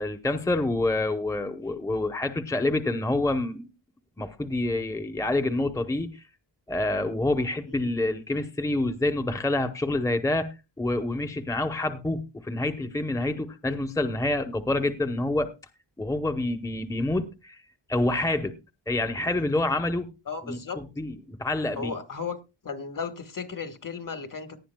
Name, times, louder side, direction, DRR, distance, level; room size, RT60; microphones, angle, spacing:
voice 1, 0.0-3.7 4.2-6.2 6.7-15.5 16.0-17.6 17.9-18.5 18.9-20.1 20.4-21.9, left 2 dB, 5° left, 0.8 m, -27 dB
voice 2, 20.3-20.8 21.8-22.4 22.6-24.6, left 5 dB, 45° left, 1.5 m, -35 dB
18.0 x 11.0 x 2.2 m
wide cardioid pair, 130°, 45 cm